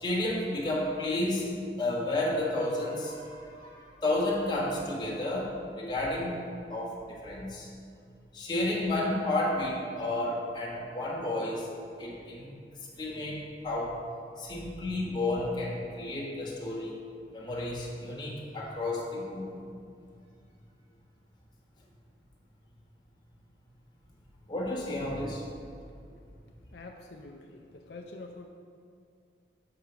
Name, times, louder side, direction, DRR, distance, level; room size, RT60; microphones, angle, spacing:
voice 1, 0.0-6.4 6.7-7.7 8.3-11.7 12.0-12.5 13.0-14.0 14.4-17.0 17.3-19.6 24.5-25.4, left 1 dB, 25° left, -3 dB, 1.2 m, -31 dB
voice 2, 26.7-28.5, left 2 dB, 70° left, 2 dB, 0.5 m, -46 dB
6.0 x 4.8 x 6.7 m, 2.4 s
head